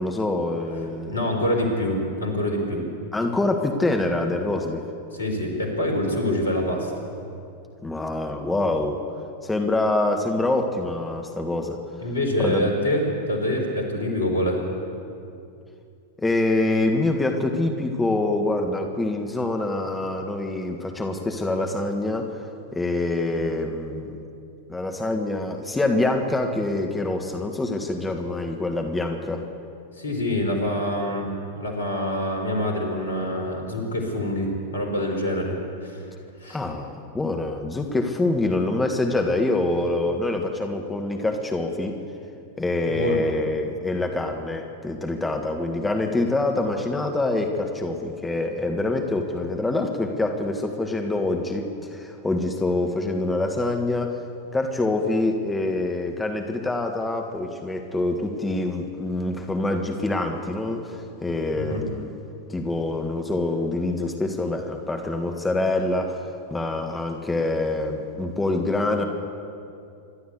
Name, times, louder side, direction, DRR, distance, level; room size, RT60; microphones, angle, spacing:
voice 1, 0.0-1.2 3.1-4.8 7.8-9.0 9.4-11.8 12.4-12.7 16.2-22.4 22.7-24.2 24.7-29.5 36.5-42.0 42.6-54.2 54.5-62.1 62.5-69.0, left 2 dB, 10° left, 4 dB, 1.6 m, -25 dB
voice 2, 1.1-2.8 5.1-6.9 12.0-14.6 30.0-31.3 31.5-35.5 35.8-36.0 36.4-36.6 42.9-43.3 61.6-61.8, left 1 dB, 70° left, 3 dB, 4.3 m, -25 dB
26.0 x 12.0 x 8.2 m, 2.5 s
figure-of-eight pair, 90°, 0 cm